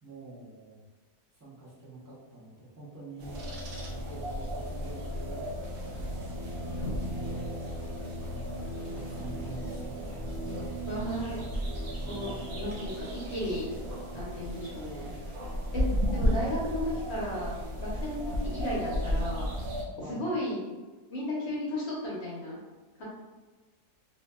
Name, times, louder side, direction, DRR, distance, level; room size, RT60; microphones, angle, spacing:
voice 1, 0.0-0.8 1.3-3.6 4.0-6.4 6.8-7.4 8.2-10.7 12.0-12.5 16.8-17.0 20.0-20.3, right 1 dB, 20° right, -8 dB, 0.6 m, -46 dB
sound 1, 3.2-19.8, equal, 85° right, 0.5 m, -34 dB
sound 2, 4.7-15.4, equal, 60° right, 1.0 m, -50 dB
voice 2, 10.9-11.4 12.1-13.7 14.1-15.1 15.7-15.8 16.1-17.5 17.8-19.5 20.1-20.7 21.1-22.6 22.9-23.0, equal, 55° left, -6 dB, 0.8 m, -34 dB
2.7 x 2.6 x 2.3 m, 1.3 s
omnidirectional pair, 1.7 m